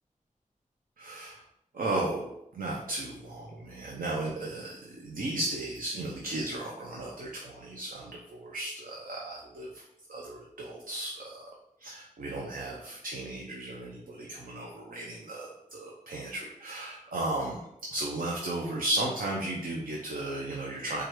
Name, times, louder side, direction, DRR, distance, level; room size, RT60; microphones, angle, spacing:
voice 1, 1.0-1.4 1.7-9.8 10.1-11.4 11.8-17.6 17.9-21.0, right 2 dB, 85° right, -1 dB, 0.6 m, -35 dB
4.6 x 2.3 x 4.5 m, 0.82 s
wide cardioid pair, 75°, 14 cm